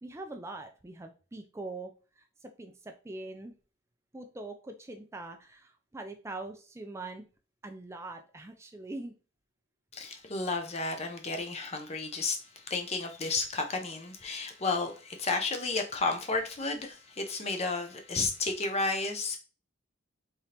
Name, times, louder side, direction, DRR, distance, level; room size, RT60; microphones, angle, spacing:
voice 1, 0.0-1.9 2.2-3.5 4.1-7.3 7.6-9.1, right 2 dB, 15° right, 0.4 m, -43 dB
voice 2, 9.9-12.4 12.7-19.4, left 3 dB, 30° left, 0.6 m, -32 dB
3.8 x 3.4 x 2.8 m
head